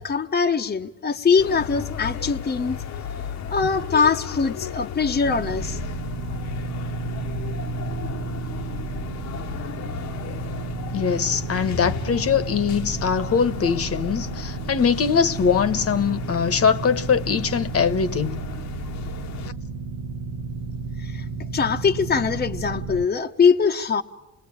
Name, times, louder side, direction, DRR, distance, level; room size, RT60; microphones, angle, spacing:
voice 1, 0.0-2.8 3.5-5.8 21.0-21.2 21.5-24.0, left 5 dB, 30° left, 1.0 m, -22 dB
sound 1, 1.4-19.5, left 8 dB, 65° left, 1.2 m, -35 dB
sound 2, 5.2-23.1, right 4 dB, 50° right, 1.4 m, -32 dB
voice 2, 10.9-18.4, left 6 dB, 50° left, 1.3 m, -22 dB
28.5 x 20.5 x 8.7 m
cardioid pair, 90°, 30 cm